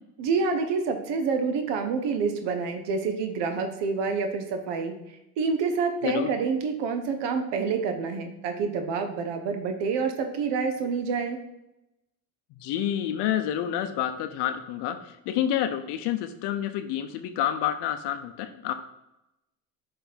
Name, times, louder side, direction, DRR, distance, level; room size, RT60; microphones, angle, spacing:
voice 1, 0.2-11.4, right 5 dB, 70° right, 6 dB, 1.0 m, -28 dB
voice 2, 12.6-18.7, left 10 dB, 65° left, 8 dB, 0.6 m, -28 dB
6.8 x 3.4 x 4.0 m, 0.90 s
supercardioid pair, 90°, 44 cm